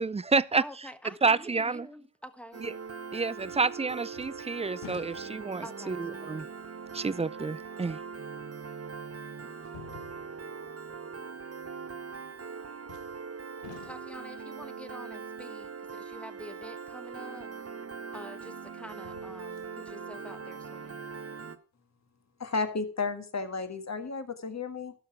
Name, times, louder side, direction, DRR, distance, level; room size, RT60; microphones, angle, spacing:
voice 1, 0.0-0.6 1.2-1.9 2.6-2.7 3.1-6.5 6.9-8.0, right 4 dB, 15° right, 0.4 m, -29 dB
voice 2, 0.6-2.7 5.6-6.0 13.8-17.5 18.1-21.0, equal, 5° left, 1.2 m, -47 dB
Piano, 2.5-21.6, right 5 dB, 35° right, 1.1 m, -41 dB
sound 1, 3.4-3.8 4.1-5.7 6.4-6.5 8.3-8.4 9.6-10.6 12.9-13.3 13.6-14.3 17.3-17.4 18.9-19.7 20.2-20.3, left 12 dB, 80° left, 0.7 m, -50 dB
voice 3, 22.4-24.9, left 4 dB, 35° left, 1.6 m, -33 dB
12.0 x 5.8 x 5.9 m
supercardioid pair, 45°, 44 cm